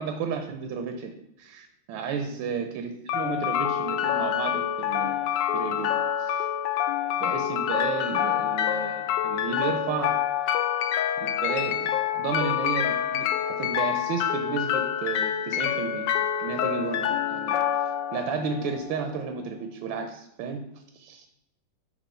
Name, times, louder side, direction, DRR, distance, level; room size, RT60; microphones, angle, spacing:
voice 1, 0.0-5.2 5.5-6.5 7.2-10.2 10.5-10.6 11.2-16.1 16.4-17.5 18.1-20.6 20.9-21.3, right 5 dB, 75° right, 6 dB, 1.3 m, -33 dB
sound 1, 3.1-19.1, left 10 dB, 75° left, 1.0 m, -27 dB
8.2 x 2.9 x 5.5 m, 0.90 s
omnidirectional pair, 2.3 m